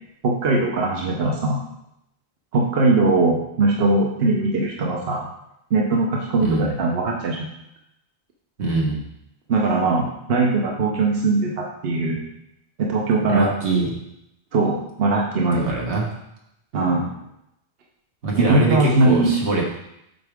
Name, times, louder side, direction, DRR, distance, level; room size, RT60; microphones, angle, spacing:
voice 1, 0.2-1.6 2.5-5.3 5.7-7.5 9.5-12.2 12.8-13.5 14.5-15.8 16.7-17.1 18.4-19.3, right 3 dB, 65° right, -1 dB, 1.0 m, -20 dB
voice 2, 8.6-9.1 13.3-13.9 15.5-16.1 18.2-19.7, right 3 dB, 80° right, -2 dB, 1.7 m, -23 dB
7.7 x 4.7 x 3.5 m, 0.82 s
omnidirectional pair, 1.1 m